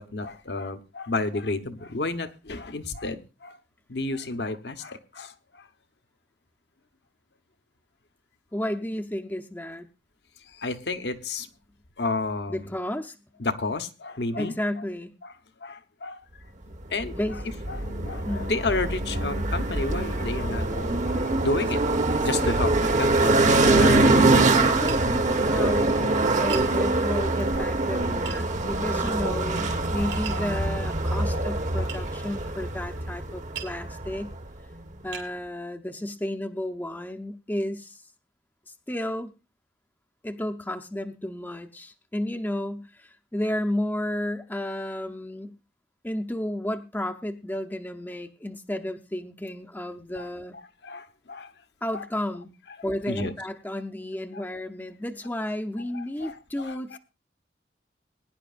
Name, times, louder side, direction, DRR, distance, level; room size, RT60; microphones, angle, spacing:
voice 1, 0.0-3.6 3.9-5.7 10.5-11.5 12.0-12.7 13.4-14.5 15.2-15.3 15.6-16.2 16.9-17.2 17.7-24.1 25.4-25.6 27.0-27.3 27.5-27.7 27.9-28.0 28.3-28.4 29.2-29.3 29.7-30.4 31.3-31.4 31.8-31.9 50.2-50.3 50.8-51.5 51.9-52.1 53.1-53.3 54.3-54.4 55.9-57.0, left 3 dB, 70° left, 1.1 m, -32 dB
voice 2, 8.5-9.9 12.5-13.2 14.4-15.1 17.1-17.4 18.2-18.5 23.6-34.3 35.0-38.0 38.7-39.3 40.2-45.5 46.0-50.6 51.8-52.5 52.8-57.0, left 1 dB, 10° left, 0.7 m, -32 dB
sound 1, 17.0-34.4, right 2 dB, 45° right, 1.2 m, -24 dB
Tap, 24.9-25.1 26.5-26.7 28.2-28.4 30.1-30.5 31.9-32.0 33.5-33.8 34.5-34.6 35.1-35.3, right 9 dB, 80° right, 3.6 m, -37 dB
21.5 x 10.5 x 2.5 m
head